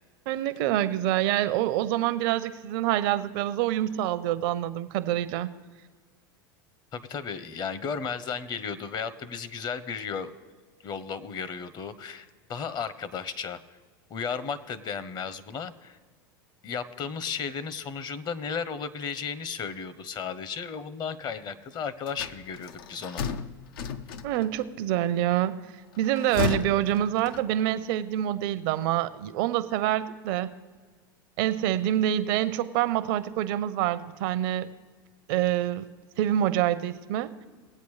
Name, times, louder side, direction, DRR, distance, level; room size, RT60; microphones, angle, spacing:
voice 1, 0.3-5.5 24.2-25.7 26.0-30.5 31.4-34.7 35.3-35.8 36.2-37.3, right 12 dB, 65° right, 13 dB, 0.6 m, -26 dB
voice 2, 6.9-10.3 10.8-13.6 14.1-16.0 16.6-23.2, left 6 dB, 35° left, 14 dB, 0.8 m, -34 dB
sound 1, 22.1-24.6 26.0-27.8, left 6 dB, 80° left, 0.6 m, -34 dB
20.0 x 8.3 x 3.2 m, 1.5 s
hypercardioid pair, 100°, 12 cm